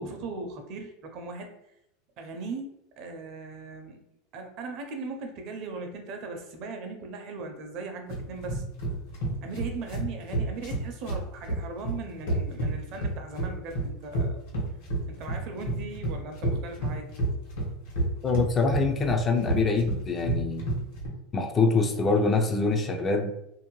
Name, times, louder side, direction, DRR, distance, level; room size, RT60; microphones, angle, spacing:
voice 1, 0.0-1.5 2.2-2.7 3.0-4.0 4.3-8.6 9.4-14.4 15.1-17.1, right 3 dB, 45° right, 4 dB, 0.5 m, -38 dB
sound 1, 8.1-21.1, right 2 dB, 75° left, 1.2 m, -30 dB
voice 2, 18.2-20.6 21.3-23.3, left 3 dB, 20° left, 3 dB, 0.3 m, -24 dB
2.6 x 2.1 x 2.9 m, 0.79 s
supercardioid pair, 150°, 0 cm